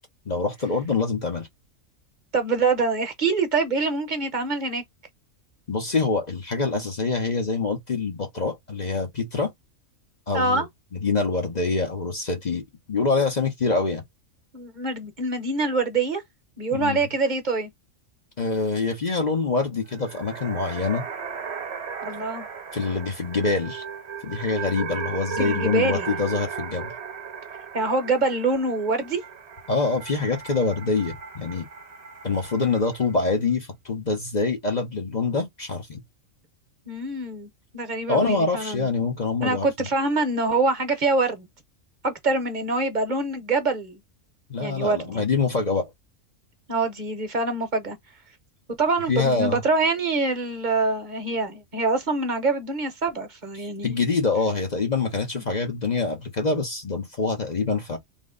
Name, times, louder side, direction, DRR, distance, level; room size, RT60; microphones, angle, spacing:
voice 1, 0.3-1.5 5.7-9.5 10.3-10.6 10.9-12.6 12.9-14.0 16.7-17.1 18.4-21.0 22.7-23.8 24.2-26.9 29.7-31.7 32.2-36.0 38.1-39.9 44.5-45.9 49.1-49.6 53.8-58.0, left 4 dB, 35° left, 0.9 m, -25 dB
voice 2, 2.3-4.8 10.3-10.7 14.5-16.2 16.6-17.7 22.0-22.4 25.4-26.1 27.7-29.2 36.9-37.5 37.7-38.9 39.4-41.5 42.0-44.0 44.6-45.2 46.7-48.0 48.7-54.0, right 3 dB, 40° right, 1.0 m, -25 dB
sound 1, 19.9-33.3, right 6 dB, 55° right, 1.2 m, -36 dB
3.6 x 3.1 x 3.7 m
omnidirectional pair, 1.4 m